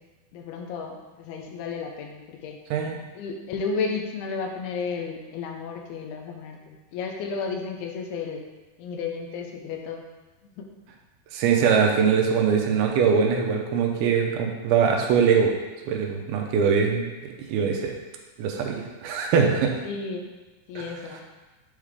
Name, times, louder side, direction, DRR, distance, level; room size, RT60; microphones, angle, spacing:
voice 1, 0.3-2.6 3.2-8.4 8.8-10.0 10.6-10.7 19.8-20.3 20.7-21.2, left 5 dB, 90° left, 2 dB, 2.6 m, -33 dB
voice 2, 11.3-15.5 15.9-17.9 18.4-19.7 20.8-20.9, right 6 dB, 85° right, 2 dB, 2.6 m, -22 dB
7.3 x 4.8 x 3.6 m, 1.2 s
omnidirectional pair, 4.5 m